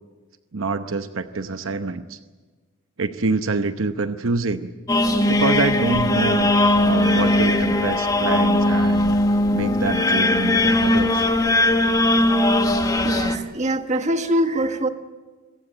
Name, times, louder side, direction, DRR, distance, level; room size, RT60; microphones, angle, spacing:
voice 1, 0.5-2.2 3.0-4.7 5.3-6.5 6.8-9.2 9.5-11.3, right 3 dB, 75° right, 9 dB, 0.9 m, -26 dB
sound 1, 4.9-13.4, left 1 dB, 20° left, 1.3 m, -19 dB
voice 2, 13.0-14.9, right 1 dB, 35° right, 7 dB, 1.5 m, -23 dB
26.0 x 15.0 x 9.1 m, 1.3 s
head